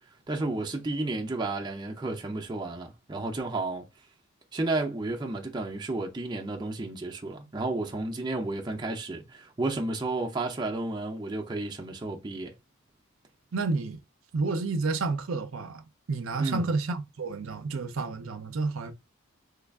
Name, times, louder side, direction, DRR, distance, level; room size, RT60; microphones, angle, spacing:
voice 1, 0.3-3.8 4.5-12.5 16.4-16.7, right 2 dB, 20° right, 0.5 m, -32 dB
voice 2, 13.5-14.0 14.3-15.8 16.1-18.9, right 3 dB, 70° right, 0.5 m, -30 dB
3.2 x 2.3 x 3.4 m
head